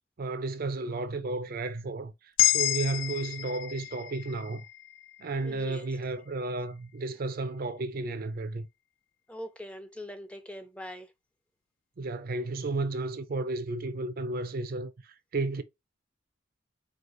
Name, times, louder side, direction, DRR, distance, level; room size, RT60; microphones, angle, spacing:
voice 1, 0.2-2.1 2.4-4.6 5.2-8.7 12.0-15.6, right 3 dB, 50° right, 0.5 m, -33 dB
sound 1, 2.4-6.6, left 14 dB, 70° left, 0.3 m, -31 dB
voice 2, 5.4-5.9 9.3-11.1, equal, 5° left, 0.5 m, -42 dB
4.6 x 2.3 x 3.9 m
head